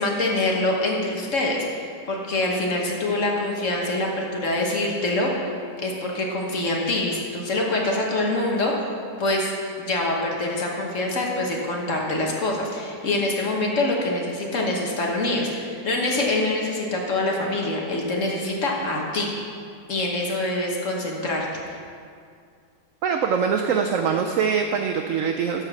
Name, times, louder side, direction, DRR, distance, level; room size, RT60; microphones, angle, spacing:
voice 1, 0.0-5.3 5.8-8.7 9.2-9.5 9.8-19.3 19.9-21.8, left 2 dB, 45° left, -1 dB, 1.5 m, -25 dB
voice 2, 23.0-25.6, right 6 dB, 75° right, 4 dB, 0.7 m, -23 dB
13.5 x 4.6 x 5.9 m, 2.2 s
omnidirectional pair, 1.9 m